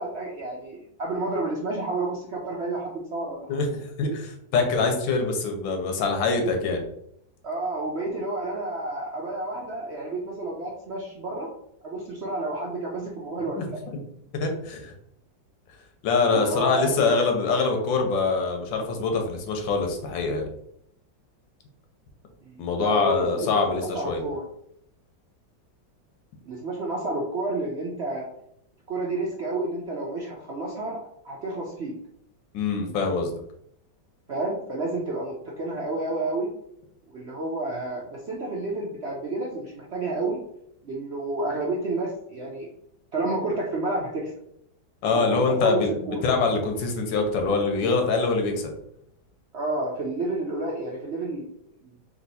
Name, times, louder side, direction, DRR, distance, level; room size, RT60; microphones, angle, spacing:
voice 1, 0.0-3.6 7.4-11.5 11.8-13.6 16.3-17.1 22.4-24.4 26.4-28.3 28.9-31.0 31.2-31.9 34.3-36.5 37.1-40.4 40.8-42.7 43.1-44.3 45.0-45.8 46.1-46.2 49.5-51.4 51.8-51.9, right 2 dB, 80° right, -3 dB, 0.6 m, -30 dB
voice 2, 3.5-6.8 13.5-14.0 14.3-14.9 16.0-20.4 22.6-24.2 32.5-33.3 45.0-48.7, left 4 dB, 85° left, 3 dB, 1.5 m, -24 dB
3.5 x 2.8 x 4.0 m, 0.73 s
omnidirectional pair, 2.1 m